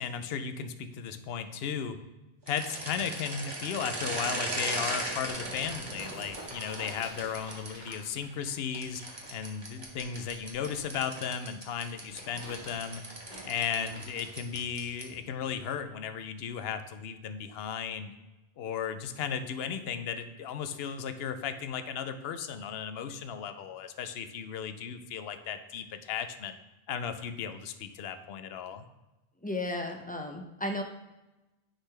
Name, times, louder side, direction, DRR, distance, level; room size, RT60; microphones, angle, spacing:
voice 1, 0.0-2.0 2.5-9.0 9.3-13.0 13.4-18.1 18.6-26.6 26.9-28.8, left 7 dB, 70° left, 9 dB, 0.8 m, -35 dB
sound 1, 2.4-7.9 8.7-15.2, right 1 dB, 25° right, 0.9 m, -38 dB
sound 2, 5.0-10.9 11.8-14.3 15.0-15.1, right 1 dB, 40° right, 1.5 m, -48 dB
voice 2, 29.4-30.8, left 1 dB, 10° left, 2 dB, 0.4 m, -34 dB
9.8 x 3.8 x 3.3 m, 1.0 s
omnidirectional pair, 1.1 m